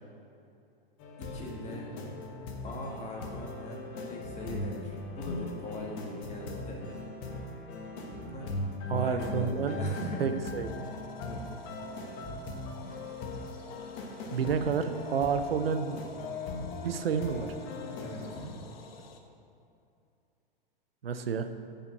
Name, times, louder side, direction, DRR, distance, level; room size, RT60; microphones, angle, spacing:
sound 1, 1.0-18.4, left 1 dB, 40° left, 1.2 m, -39 dB
voice 1, 1.2-1.9 2.6-6.8 8.0-8.6 8.9-10.4 11.2-11.4 11.7-11.9 18.0-18.5, left 1 dB, 25° left, -2 dB, 1.7 m, -40 dB
voice 2, 8.9-9.8 10.2-10.7 14.3-16.0 16.8-17.5 21.0-21.5, right 6 dB, 90° right, 9 dB, 0.6 m, -30 dB
sound 2, 10.6-19.2, left 5 dB, 80° left, 1.0 m, -49 dB
6.9 x 5.6 x 7.1 m, 2.6 s
hypercardioid pair, 115°, 29 cm